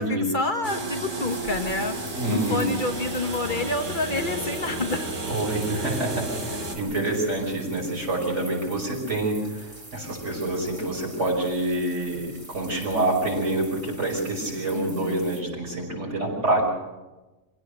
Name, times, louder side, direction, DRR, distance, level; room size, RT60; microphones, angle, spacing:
voice 1, 0.0-2.0 2.3-5.1 14.7-15.3, left 2 dB, 40° left, 6 dB, 1.4 m, -28 dB
sound 1, 0.6-6.8, right 2 dB, 90° right, 2.8 m, -32 dB
sound 2, 1.2-15.4, right 1 dB, 20° right, 3.1 m, -46 dB
voice 2, 2.1-2.6 5.2-16.6, right 2 dB, 70° right, -1 dB, 6.3 m, -27 dB
25.5 x 16.5 x 6.7 m, 1.1 s
omnidirectional pair, 1.3 m